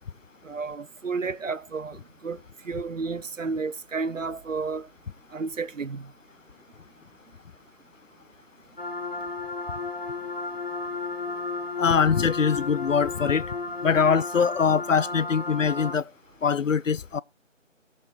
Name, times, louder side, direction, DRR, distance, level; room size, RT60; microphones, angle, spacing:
voice 1, 0.4-2.4 2.6-4.9 5.3-6.1, right 4 dB, 75° right, 0.7 m, -32 dB
sound 1, 8.8-16.0, left 3 dB, 45° left, 1.3 m, -33 dB
voice 2, 11.8-13.6 13.8-16.1 16.4-17.2, left 6 dB, 75° left, 0.5 m, -23 dB
18.5 x 7.2 x 2.5 m
figure-of-eight pair, 170°, 39 cm